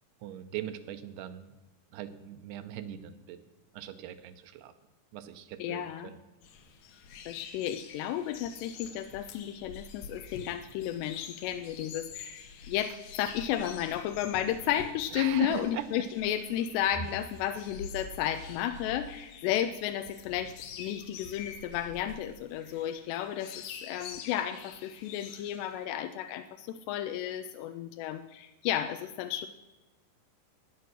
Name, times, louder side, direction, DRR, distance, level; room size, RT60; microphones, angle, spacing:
voice 1, 0.2-1.5 1.9-3.4 3.7-4.7 5.1-6.2 15.1-15.9, right 11 dB, 80° right, 10 dB, 2.7 m, -40 dB
voice 2, 5.6-6.1 7.3-23.5 23.8-29.5, left 11 dB, 85° left, 9 dB, 2.8 m, -33 dB
sound 1, 6.4-25.9, left 5 dB, 70° left, 2.9 m, -46 dB
14.0 x 9.5 x 6.2 m, 1.1 s
omnidirectional pair, 4.8 m